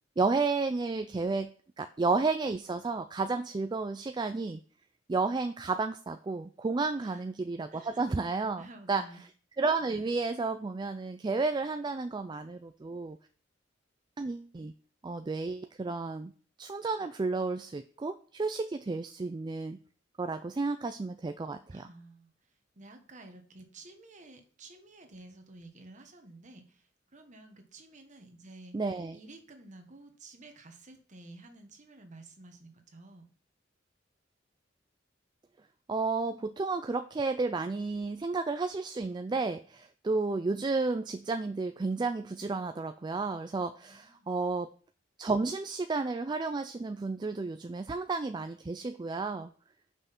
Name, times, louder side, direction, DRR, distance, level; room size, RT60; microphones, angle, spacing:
voice 1, 0.2-4.6 5.1-9.0 9.6-13.2 14.2-14.7 15.0-16.3 16.6-19.8 20.2-21.9 28.7-29.2 35.9-44.7 45.2-49.5, right 3 dB, 25° right, 9 dB, 0.3 m, -32 dB
voice 2, 7.7-8.1 8.6-9.2 21.7-28.8 29.1-33.3 43.8-44.3, right 2 dB, 40° right, 5 dB, 1.4 m, -52 dB
6.2 x 5.5 x 5.8 m, 0.43 s
head